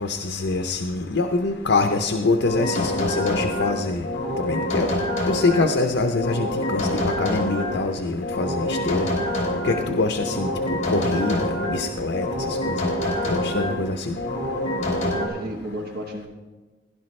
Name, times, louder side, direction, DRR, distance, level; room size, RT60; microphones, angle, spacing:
voice 1, 0.0-4.0 4.4-4.9 5.3-6.9 7.2-9.1 9.6-10.5 10.9-12.3 13.3-14.2, left 3 dB, 65° left, 6 dB, 0.7 m, -24 dB
sound 1, 2.4-5.7 6.1-7.8 8.2-9.9 10.2-11.8 12.1-13.8 14.2-15.3, left 1 dB, 40° left, 3.5 m, -26 dB
voice 2, 15.0-16.3, equal, 55° right, 2 dB, 1.2 m, -33 dB
16.5 x 11.0 x 3.2 m, 1.3 s
head